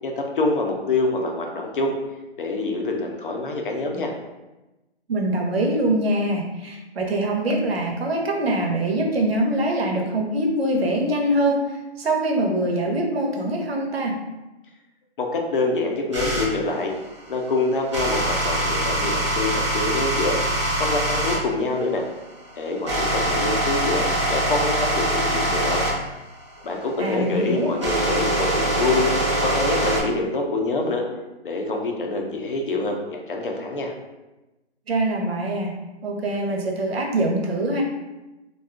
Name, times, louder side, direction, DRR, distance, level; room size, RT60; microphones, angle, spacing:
voice 1, 0.0-2.0 2.4-4.1 15.2-16.9 17.3-20.4 20.8-22.1 22.6-25.9 26.6-29.1 29.4-31.0 31.4-33.9, left 2 dB, 50° left, 1 dB, 0.6 m, -25 dB
voice 2, 5.1-14.2 27.0-27.7 34.9-35.7 36.0-37.8, right 1 dB, 65° right, 1 dB, 0.7 m, -23 dB
sound 1, 16.1-16.5 17.9-21.4 22.1-30.0, right 1 dB, 25° right, 0.5 m, -23 dB
2.5 x 2.3 x 3.5 m, 1.1 s
hypercardioid pair, 170°, 34 cm